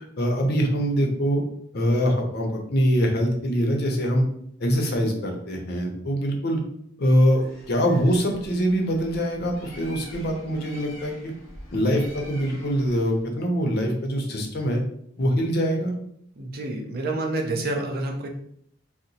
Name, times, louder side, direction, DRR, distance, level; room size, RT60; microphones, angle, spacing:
voice 1, 0.2-1.4 1.7-4.2 4.6-6.6 7.0-11.3 11.7-14.8 15.2-15.9, equal, 55° left, 2 dB, 0.6 m, -23 dB
Bird, 7.3-13.3, left 1 dB, 85° left, 1.0 m, -45 dB
voice 2, 16.4-18.3, right 2 dB, 50° right, 2 dB, 0.6 m, -28 dB
2.8 x 2.0 x 3.9 m, 0.69 s
head